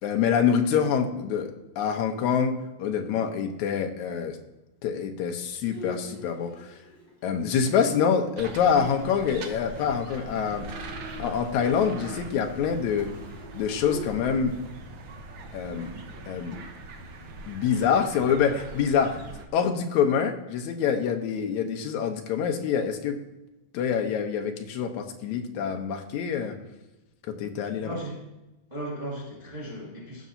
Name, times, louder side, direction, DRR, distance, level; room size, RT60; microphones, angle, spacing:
voice 1, 0.0-4.4 4.8-6.8 7.2-10.7 11.2-13.1 13.5-14.6 15.5-15.9 16.3-16.6 17.5-19.2 19.5-23.2 23.7-26.6 27.3-28.0, left 7 dB, 70° left, 4 dB, 2.1 m, -26 dB
Bowed string instrument, 5.6-10.0 10.3-10.4 10.7-11.0 11.2-14.1, left 3 dB, 30° left, 2.6 m, -46 dB
sound 1, 8.4-19.5, right 2 dB, 85° right, 1.0 m, -41 dB
voice 2, 27.8-28.2 28.7-30.3, right 1 dB, 10° right, -5 dB, 1.9 m, -36 dB
16.5 x 6.1 x 2.8 m, 1.0 s
omnidirectional pair, 3.8 m